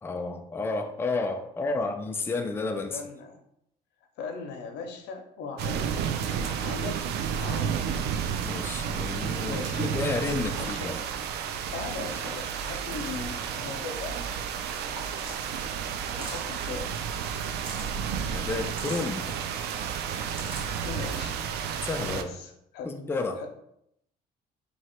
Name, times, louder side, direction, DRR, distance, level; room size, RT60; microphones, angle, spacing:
voice 1, 0.0-3.0 8.4-11.0 18.3-19.3 21.8-22.3 22.8-23.4, left 3 dB, 15° left, 4 dB, 0.4 m, -31 dB
voice 2, 2.9-3.4 4.2-6.0 6.2-7.0 7.3-7.8 9.4-9.9 10.6-11.0 11.7-14.5 16.2-17.3 20.8-21.5 22.0-22.9 23.4-23.5, left 5 dB, 85° left, 4 dB, 0.7 m, -39 dB
sound 1, 5.6-22.2, right 7 dB, 75° right, 0.4 m, -31 dB
sound 2, 15.0-15.5 16.0-16.6 17.4-17.9 18.6-19.1 20.0-20.7, right 1 dB, 30° right, 1.4 m, -42 dB
3.1 x 2.8 x 4.3 m, 0.77 s
cardioid pair, 110°, 17 cm